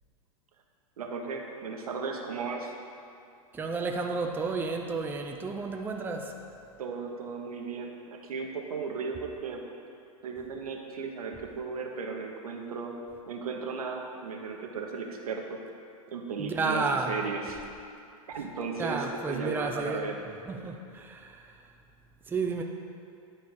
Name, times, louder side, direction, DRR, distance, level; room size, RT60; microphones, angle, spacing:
voice 1, 1.0-2.7 6.8-9.6 10.2-12.9 13.3-15.6 16.1-17.6 18.3-20.3, right 4 dB, 85° right, 2 dB, 1.1 m, -36 dB
voice 2, 3.5-6.3 16.4-17.1 18.8-20.0 20.5-21.4 22.3-22.6, right 4 dB, 10° right, 2 dB, 0.5 m, -31 dB
10.5 x 4.4 x 4.8 m, 2.4 s
hypercardioid pair, 120°, 19 cm